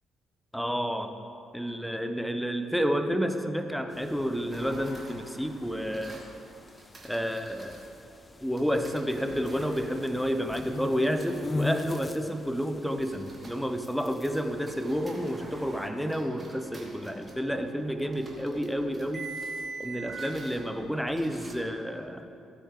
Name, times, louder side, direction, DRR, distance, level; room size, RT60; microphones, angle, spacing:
voice 1, 0.5-1.1 1.5-6.2 7.0-7.8 8.4-19.3 19.8-22.3, equal, ahead, 7 dB, 0.9 m, -30 dB
sound 1, 3.9-15.9, left 3 dB, 30° left, 0.4 m, -41 dB
sound 2, 4.5-7.8 8.6-13.7 14.1-21.5, right 3 dB, 30° right, 2.2 m, -45 dB
15.0 x 9.1 x 3.3 m, 2.6 s
figure-of-eight pair, 45°, 0 cm